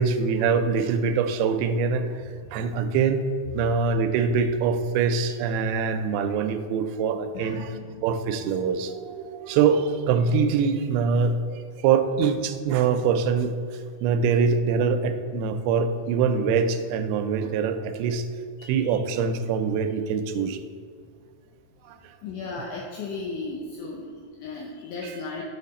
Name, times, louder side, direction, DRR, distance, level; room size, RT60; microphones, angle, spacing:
voice 1, 0.0-2.2 2.5-3.3 3.5-7.7 8.0-13.6 14.0-18.3 18.7-20.6 21.9-22.1 24.6-24.7 25.0-25.2, right 5 dB, 85° right, 9 dB, 2.5 m, -24 dB
voice 2, 7.3-8.0 8.4-8.6 18.6-19.0 22.2-25.4, left 3 dB, 80° left, -1 dB, 1.8 m, -36 dB
6.5 x 5.5 x 4.1 m, 2.1 s
omnidirectional pair, 4.4 m